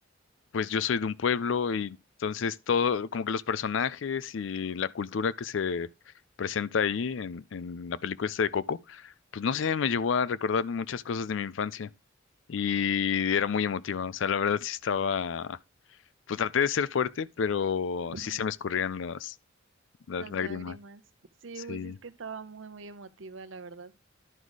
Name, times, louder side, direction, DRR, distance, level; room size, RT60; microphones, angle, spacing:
voice 1, 0.5-5.9 6.4-11.9 12.5-15.6 16.3-19.3 20.1-20.8 21.7-22.0, left 6 dB, 70° left, 0.4 m, -29 dB
voice 2, 18.0-18.4 20.2-21.0 21.4-23.9, right 4 dB, 70° right, 0.7 m, -43 dB
11.0 x 4.8 x 4.0 m
head